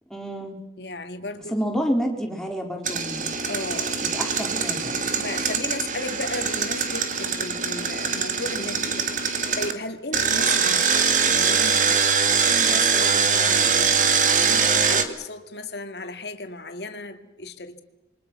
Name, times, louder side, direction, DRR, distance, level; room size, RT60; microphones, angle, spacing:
voice 1, 0.1-0.6 1.5-3.3 4.1-5.0, equal, 5° left, 4.0 m, -28 dB
voice 2, 0.8-1.6 3.5-4.0 5.2-12.0 12.4-14.1 14.5-17.8, left 2 dB, 65° left, 2.3 m, -35 dB
Engine, 2.8-9.7 10.1-15.0, right 6 dB, 45° right, 2.2 m, -22 dB
27.5 x 23.5 x 6.2 m
head